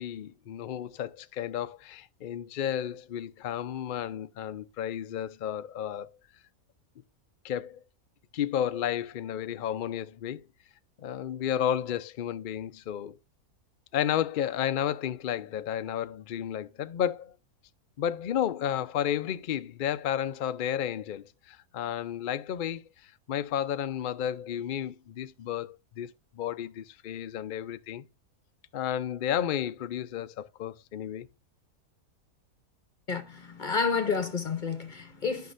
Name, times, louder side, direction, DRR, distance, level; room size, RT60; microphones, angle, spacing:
voice 1, 0.0-6.2 7.4-7.8 8.3-10.4 11.0-13.2 13.9-17.3 18.0-22.8 23.3-28.0 28.7-31.3, left 10 dB, 90° left, 0.4 m, -32 dB
voice 2, 33.1-35.5, left 5 dB, 40° left, 0.8 m, -30 dB
11.5 x 5.8 x 2.5 m
omnidirectional pair, 1.6 m